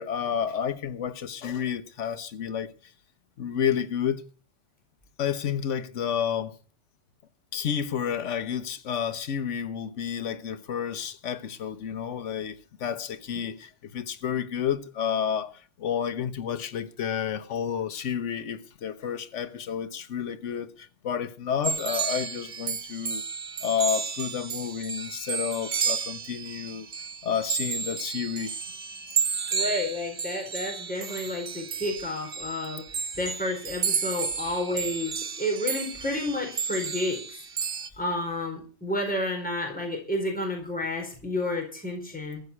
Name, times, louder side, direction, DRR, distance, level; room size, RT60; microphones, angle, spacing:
voice 1, 0.0-2.7 3.4-4.2 5.2-6.5 7.5-23.2 23.6-26.9 27.2-28.6 31.0-31.2, left 8 dB, 80° left, 1.3 m, -30 dB
sound 1, 21.6-37.9, right 6 dB, 55° right, 1.2 m, -32 dB
voice 2, 29.5-32.8 33.2-37.4 38.0-42.4, left 1 dB, 5° left, 4.5 m, -30 dB
14.5 x 6.1 x 9.8 m
omnidirectional pair, 1.2 m